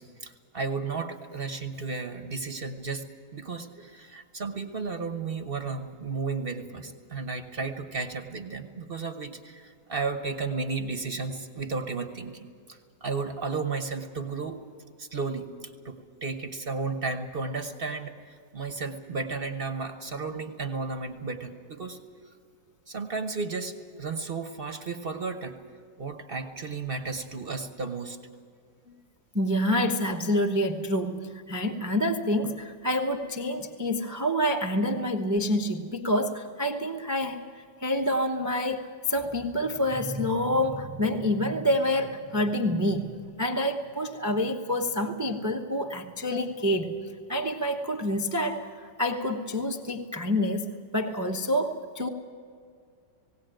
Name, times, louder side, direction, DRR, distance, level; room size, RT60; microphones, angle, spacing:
voice 1, 0.0-3.0 3.3-14.6 15.0-22.0 22.9-25.5 26.0-28.2, right 4 dB, 35° right, 6 dB, 1.1 m, -33 dB
voice 2, 29.3-37.4 37.8-46.9 47.3-52.1, left 1 dB, 15° right, 4 dB, 0.6 m, -27 dB
18.5 x 18.0 x 9.0 m, 2.1 s
omnidirectional pair, 2.0 m